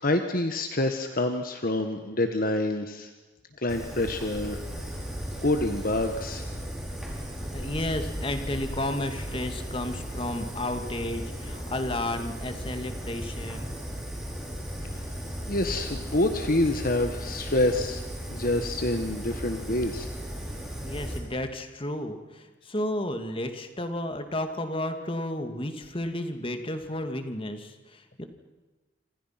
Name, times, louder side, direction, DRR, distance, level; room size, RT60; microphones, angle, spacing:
voice 1, 0.0-3.1 3.6-4.6 5.4-6.5 15.5-18.0 18.3-20.1, left 1 dB, 45° left, 6 dB, 1.5 m, -27 dB
Fire, 3.7-21.2, equal, ahead, 5.5 m, -36 dB
voice 2, 7.5-13.6 20.8-28.3, left 1 dB, 30° left, 7 dB, 2.2 m, -32 dB
27.5 x 27.0 x 5.9 m, 1.2 s
head